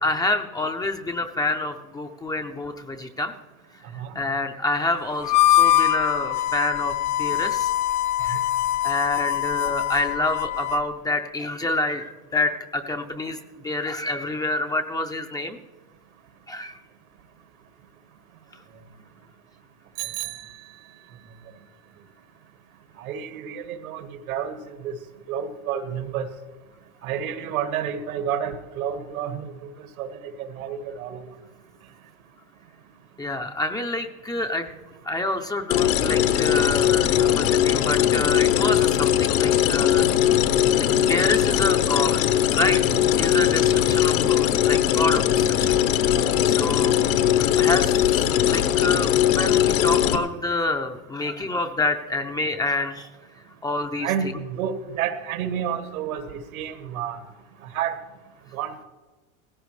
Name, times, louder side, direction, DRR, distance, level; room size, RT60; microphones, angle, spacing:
voice 1, 0.0-3.3 4.1-7.7 8.2-8.5 8.8-13.4 13.6-15.6 16.5-16.8 33.2-34.7 35.0-40.1 40.8-42.8 43.2-45.7 46.4-47.1 47.6-53.1 53.6-54.1, left 2 dB, 10° left, 5 dB, 0.4 m, -27 dB
Harmonica, 5.2-10.9, left 12 dB, 45° left, 0.7 m, -23 dB
Bicycle bell, 20.0-21.2, right 15 dB, 45° right, 0.8 m, -36 dB
voice 2, 23.0-24.6 24.8-24.9 25.3-26.3 27.0-29.5 30.0-30.1 30.4-31.2 42.9-43.0 54.0-57.2 57.7-57.9 58.5-58.7, right 8 dB, 85° right, 7 dB, 1.9 m, -29 dB
sound 1, 35.7-50.2, left 11 dB, 70° left, 1.1 m, -20 dB
17.5 x 15.5 x 3.2 m, 1.3 s
supercardioid pair, 130°, 41 cm